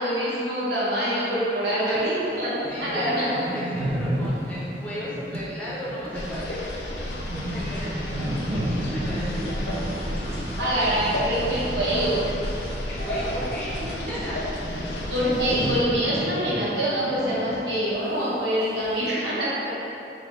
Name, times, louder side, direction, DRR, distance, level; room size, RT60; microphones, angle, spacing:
voice 1, 0.0-3.3 10.6-12.2 15.1-19.7, equal, 75° right, -8 dB, 1.1 m, -25 dB
voice 2, 1.6-2.0 2.7-9.4 12.9-13.8 14.1-14.4, equal, 10° left, -10 dB, 0.6 m, -36 dB
sound 1, 1.9-2.0 2.4-2.5 2.6-12.9 13.1-17.6 17.9-18.0 18.6-19.1, right 1 dB, 50° right, 0.4 m, -33 dB
sound 2, 6.1-15.8, left 1 dB, 75° left, 0.5 m, -32 dB
sound 3, 9.2-13.6, equal, 35° right, 1.2 m, -35 dB
3.8 x 3.1 x 3.1 m, 2.9 s
head